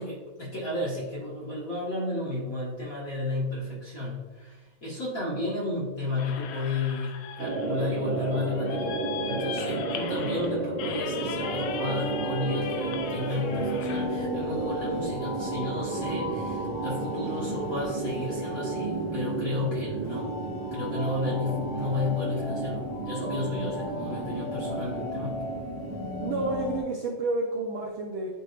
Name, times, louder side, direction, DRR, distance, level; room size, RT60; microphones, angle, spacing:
voice 1, 0.0-9.0 9.3-20.3 20.7-25.4, left 2 dB, 40° left, -7 dB, 1.3 m, -32 dB
sound 1, 6.2-14.1, left 7 dB, 85° left, 2.1 m, -39 dB
sound 2, 7.4-26.7, right 3 dB, 60° right, 2.0 m, -32 dB
sound 3, 11.4-26.8, left 2 dB, 65° left, 3.3 m, -37 dB
voice 2, 26.2-28.3, right 2 dB, 80° right, -2 dB, 1.1 m, -30 dB
10.5 x 3.8 x 2.5 m, 1.2 s
omnidirectional pair, 3.3 m